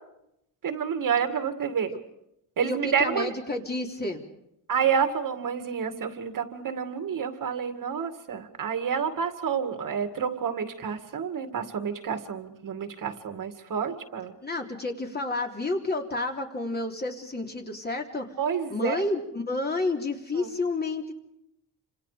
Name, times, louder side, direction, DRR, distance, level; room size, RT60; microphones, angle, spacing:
voice 1, 0.6-1.9 2.6-3.3 4.7-14.3 18.4-19.0 20.3-20.5, right 7 dB, 55° right, 8 dB, 2.3 m, -29 dB
voice 2, 2.6-4.2 14.4-18.3 18.7-21.1, left 2 dB, 25° left, 2 dB, 3.4 m, -30 dB
28.5 x 27.0 x 5.1 m, 0.81 s
cardioid pair, 145°, 40 cm